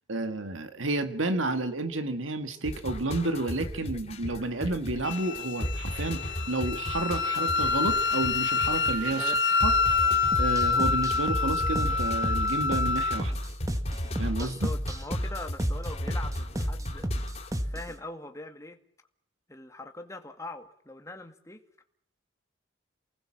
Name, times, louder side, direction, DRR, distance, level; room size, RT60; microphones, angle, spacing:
voice 1, 0.1-9.4 9.6-9.7 10.4-13.3 14.2-14.7, right 2 dB, 80° right, 9 dB, 1.9 m, -31 dB
sound 1, 2.6-17.5, equal, 35° left, 3.9 m, -36 dB
Wind instrument woodwind instrument, 5.0-13.2, left 4 dB, 60° left, 1.6 m, -27 dB
voice 2, 9.2-9.5 14.4-17.1 17.6-18.8 19.5-21.6, left 2 dB, 15° left, 5 dB, 2.1 m, -42 dB
sound 2, 10.3-17.9, equal, 15° right, 1.7 m, -32 dB
28.5 x 19.5 x 7.5 m, 0.67 s
head